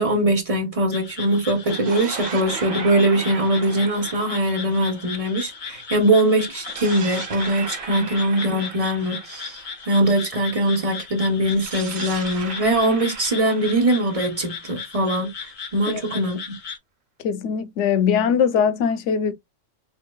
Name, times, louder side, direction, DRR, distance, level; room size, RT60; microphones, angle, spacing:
voice 1, 0.0-9.6 9.9-15.3 15.7-16.5, right 1 dB, 30° right, 1.0 m, -21 dB
sound 1, 0.9-16.8, left 6 dB, 45° left, 0.8 m, -37 dB
sound 2, 1.5-5.9 6.5-10.4 11.5-15.3, right 5 dB, 55° right, 1.2 m, -37 dB
voice 2, 17.2-19.3, left 7 dB, 75° left, 0.9 m, -21 dB
4.4 x 3.3 x 2.2 m
omnidirectional pair, 1.3 m